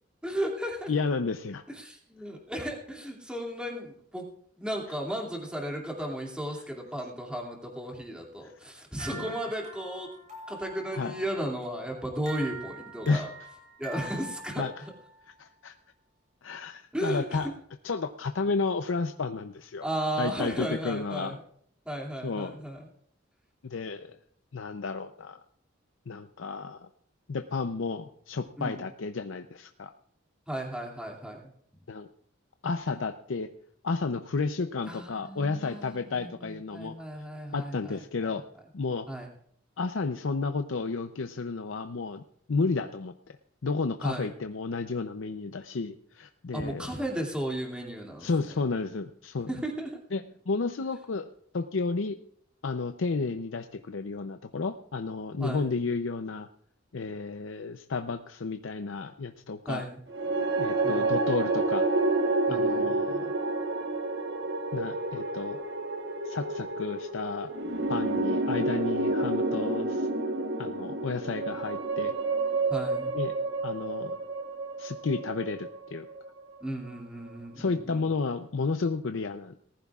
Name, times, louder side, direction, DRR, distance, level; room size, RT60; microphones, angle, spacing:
voice 1, 0.2-0.9 1.7-4.2 4.6-10.1 10.5-13.3 13.8-14.7 16.9-17.5 19.8-21.4 21.8-22.9 28.6-28.8 30.5-31.5 34.8-38.0 39.1-39.3 44.0-44.3 46.5-48.3 49.5-50.0 55.4-55.7 59.7-60.0 60.8-61.1 62.5-62.9 72.7-73.1 76.6-78.0, right 1 dB, 5° right, -1 dB, 2.4 m, -35 dB
voice 2, 0.9-1.6 8.4-8.5 9.1-9.3 11.0-11.1 13.1-13.3 14.0-14.1 14.6-14.8 15.4-15.7 16.4-17.5 17.8-19.9 20.2-21.4 22.2-22.6 23.6-24.2 24.5-25.4 26.1-26.9 27.3-29.9 31.9-32.1 32.6-33.5 33.8-37.0 37.5-38.4 38.7-39.1 39.8-42.2 42.5-43.4 43.6-46.9 48.2-49.5 50.1-51.3 51.5-52.2 52.6-56.5 56.9-59.9 60.6-61.9 62.5-63.3 64.7-65.6 66.2-67.5 67.9-70.1 70.6-72.1 73.1-73.3 73.6-74.2 74.8-76.1 77.6-79.5, left 4 dB, 85° left, 7 dB, 0.6 m, -32 dB
sound 1, 9.0-15.2, right 2 dB, 40° right, 5.9 m, -44 dB
sound 2, 60.1-76.4, right 2 dB, 65° right, 1.3 m, -29 dB
19.0 x 14.5 x 2.4 m, 0.65 s
head